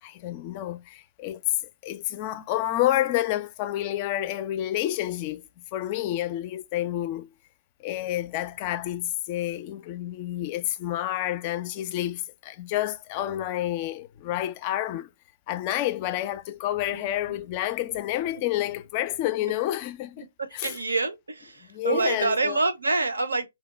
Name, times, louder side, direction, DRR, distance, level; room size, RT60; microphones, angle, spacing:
voice 1, 0.0-7.3 7.8-15.1 15.5-20.3 20.5-20.7 21.7-22.6, left 13 dB, 30° left, 0.3 m, -29 dB
voice 2, 16.9-17.4 20.2-20.3 20.6-23.5, right 3 dB, 85° right, 0.6 m, -27 dB
2.7 x 2.2 x 3.7 m
figure-of-eight pair, 135°, 0 cm